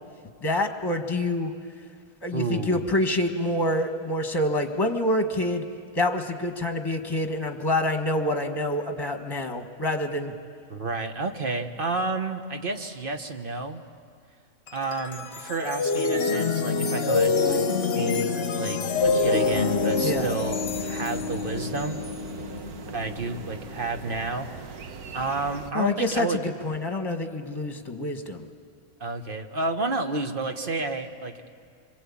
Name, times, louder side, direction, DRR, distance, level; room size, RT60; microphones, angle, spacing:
voice 1, 0.4-1.5 2.2-5.6 5.9-10.3 20.0-20.3 25.7-28.4, left 1 dB, 15° left, 5 dB, 1.5 m, -27 dB
voice 2, 2.3-2.8 10.7-13.8 14.7-17.6 17.9-22.0 22.9-24.8 25.1-26.4 29.0-31.5, right 3 dB, 40° right, 6 dB, 1.3 m, -30 dB
sound 1, 14.7-23.9, left 4 dB, 50° left, 1.1 m, -26 dB
sound 2, 18.9-25.7, right 5 dB, 85° right, 1.6 m, -41 dB
26.5 x 22.0 x 8.6 m, 2.2 s
omnidirectional pair, 1.5 m